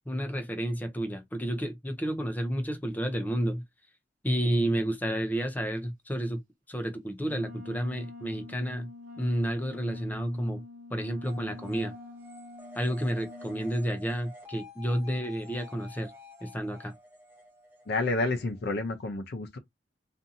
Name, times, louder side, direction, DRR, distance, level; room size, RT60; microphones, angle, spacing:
voice 1, 0.1-3.6 4.2-6.4 6.7-8.9 9.2-10.6 10.9-11.9 12.7-16.1 16.4-16.9, equal, 10° left, 0.5 m, -30 dB
Wind instrument woodwind instrument, 7.2-14.0, left 3 dB, 45° right, 0.6 m, -46 dB
sound 1, 11.2-18.7, left 2 dB, 10° right, 0.9 m, -50 dB
voice 2, 17.9-19.6, left 2 dB, 60° left, 0.5 m, -29 dB
2.6 x 2.5 x 2.6 m
head